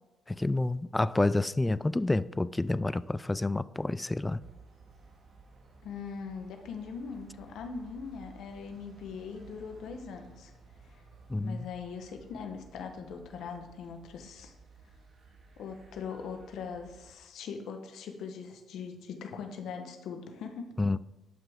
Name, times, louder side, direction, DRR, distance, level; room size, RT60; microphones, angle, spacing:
voice 1, 0.3-4.4 11.3-11.6 20.8-21.0, left 2 dB, 15° left, 17 dB, 0.3 m, -29 dB
sound 1, 4.4-17.2, right 3 dB, 50° right, 1.8 m, -56 dB
voice 2, 5.8-10.5 11.4-14.5 15.6-20.7, left 6 dB, 75° left, 5 dB, 1.1 m, -41 dB
11.0 x 5.8 x 3.6 m, 1.1 s
cardioid pair, 90°, 0 cm